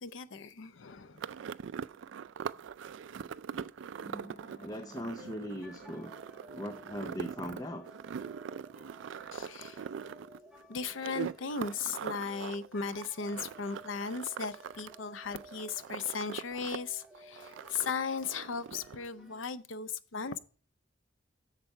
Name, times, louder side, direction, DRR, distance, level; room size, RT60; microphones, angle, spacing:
voice 1, 0.0-1.2 9.3-9.8 10.7-20.4, left 5 dB, 85° left, 0.6 m, -37 dB
sound 1, 1.2-14.9 15.2-16.8 17.0-19.0, right 7 dB, 75° right, 0.3 m, -42 dB
sound 2, 1.9-12.4 12.7-12.8, right 1 dB, 45° left, 3.1 m, -58 dB
voice 2, 4.6-6.1 6.5-7.9, equal, 20° left, 0.5 m, -39 dB
sound 3, 5.2-19.4, equal, 5° right, 0.9 m, -56 dB
8.2 x 6.7 x 4.4 m
head